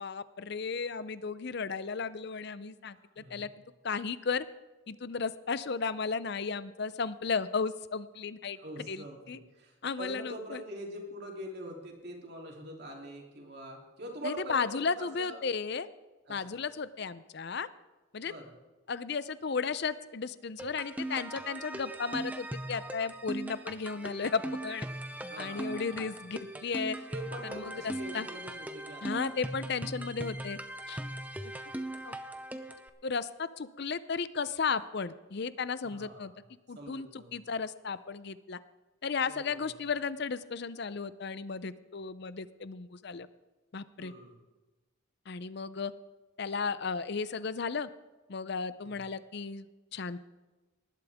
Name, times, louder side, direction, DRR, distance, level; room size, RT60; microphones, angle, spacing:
voice 1, 0.0-3.5 3.8-4.5 4.9-9.4 9.8-10.6 14.2-15.9 16.3-17.7 18.1-18.3 18.9-24.9 25.4-27.0 27.5-28.3 29.0-30.6 30.9-31.0 32.0-32.2 33.0-36.3 36.7-38.6 39.0-43.3 43.7-44.1 45.3-45.9 46.4-47.9 48.3-50.2, left 5 dB, 50° left, 15 dB, 0.5 m, -34 dB
voice 2, 3.0-3.5 8.6-15.4 16.3-16.6 18.2-18.5 25.3-26.2 27.1-29.3 29.8-30.1 35.8-36.4 36.7-37.3 39.3-39.7 44.0-44.4 48.8-49.0, right 1 dB, 50° right, 0 dB, 3.1 m, -44 dB
sound 1, 20.6-32.9, right 1 dB, 5° right, 0.6 m, -39 dB
19.0 x 11.5 x 3.6 m, 1.2 s
head